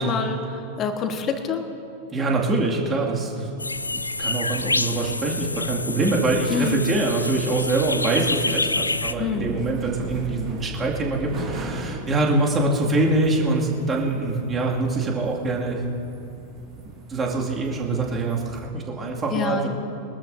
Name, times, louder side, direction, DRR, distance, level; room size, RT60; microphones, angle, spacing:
voice 1, 0.0-1.6 6.5-6.8 9.2-9.5 19.3-19.7, left 5 dB, 30° left, 6 dB, 1.3 m, -26 dB
voice 2, 2.1-3.5 3.9-15.8 16.9-19.7, right 2 dB, 20° right, -2 dB, 2.2 m, -24 dB
sound 1, 3.6-9.1, left 2 dB, 80° left, 0.4 m, -27 dB
sound 2, 4.5-18.7, right 3 dB, 40° right, 3.9 m, -39 dB
23.5 x 13.0 x 2.7 m, 2.7 s
figure-of-eight pair, 90°, 0 cm